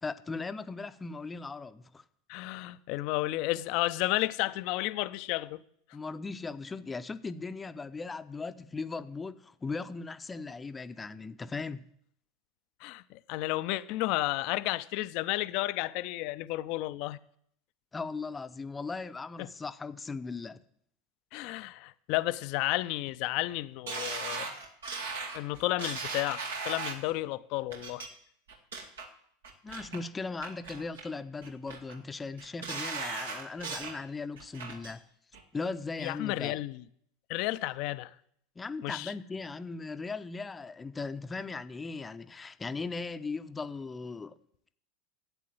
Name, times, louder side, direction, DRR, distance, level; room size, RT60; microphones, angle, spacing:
voice 1, 0.0-2.0 5.9-11.8 17.9-20.6 29.6-35.0 35.5-36.6 38.6-44.4, left 4 dB, 15° left, 0.7 m, -38 dB
voice 2, 2.3-5.6 12.8-17.2 19.4-19.5 21.3-24.5 25.3-28.0 36.0-36.8 37.3-38.1 38.8-39.1, left 18 dB, 55° left, 0.6 m, -32 dB
sound 1, 23.9-27.1 27.7-28.1 28.5-29.1 29.4-30.0 30.4-31.1 31.4-32.0 32.4-34.0 34.4-34.9 35.3-35.4, right 4 dB, 75° right, 1.8 m, -38 dB
12.5 x 8.5 x 7.8 m
hypercardioid pair, 85°, 0 cm